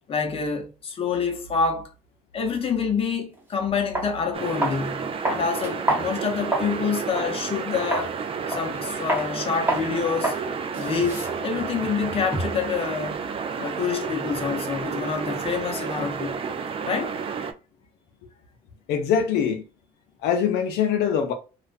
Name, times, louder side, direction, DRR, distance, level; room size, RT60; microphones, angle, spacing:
voice 1, 0.1-1.9 2.3-8.1 8.5-10.3 10.7-13.2 13.6-16.4 16.8-17.2, left 5 dB, 35° left, 0.7 m, -27 dB
sound 1, 3.4-3.5 3.9-4.1 4.6-4.9 5.2-6.8 7.1-7.3 7.9-8.1 8.5-8.8 9.1-9.3 9.7-9.9 10.2-10.4 10.7-12.7, right 1 dB, 10° right, 0.9 m, -28 dB
sound 2, 4.3-17.5, right 6 dB, 35° right, 0.3 m, -31 dB
voice 2, 18.9-19.6 20.2-21.3, left 7 dB, 80° left, 0.5 m, -23 dB
2.4 x 2.1 x 2.4 m
cardioid pair, 110°, 17 cm